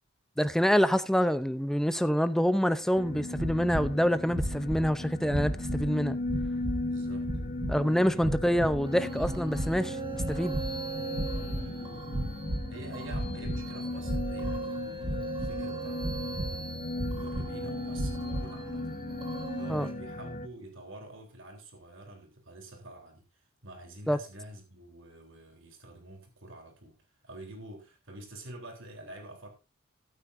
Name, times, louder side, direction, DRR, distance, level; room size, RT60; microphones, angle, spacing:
voice 1, 0.4-6.2 7.7-10.6 19.7-19.9 24.1-24.2, equal, ahead, 0.6 m, -26 dB
sound 1, 3.0-20.5, left 2 dB, 40° left, 0.9 m, -37 dB
sound 2, 3.3-3.9 4.3-4.9 5.3-5.9 6.2-6.8 7.2-7.8 8.2-8.9 9.1-9.8 10.1-10.8 11.1-11.7 12.1-12.7 13.0-13.6 14.0-14.6 15.0-15.6 16.0-16.6 17.0-17.5 17.9-18.5, right 1 dB, 45° right, 1.5 m, -34 dB
voice 2, 6.8-7.3 7.8-8.2 11.3-11.8 12.7-16.6 17.0-18.9 19.6-27.0 27.2-29.5, right 1 dB, 65° right, 3.6 m, -48 dB
sound 3, 8.8-19.9, right 3 dB, 25° right, 3.2 m, -40 dB
14.0 x 12.0 x 2.6 m
head